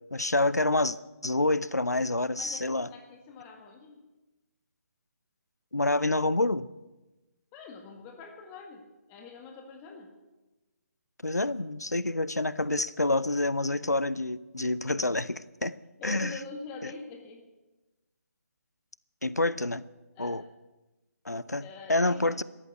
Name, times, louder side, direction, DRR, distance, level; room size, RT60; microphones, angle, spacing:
voice 1, 0.1-1.0 1.2-2.9 5.7-6.7 11.2-15.8 16.0-16.3 19.2-19.8 20.2-20.4 21.3-22.4, left 2 dB, 85° left, 0.7 m, -27 dB
voice 2, 2.4-4.0 7.5-10.1 16.0-17.5 20.1-20.4 21.6-22.3, left 4 dB, 20° left, 1.7 m, -45 dB
13.5 x 11.5 x 8.2 m
figure-of-eight pair, 145°, 9 cm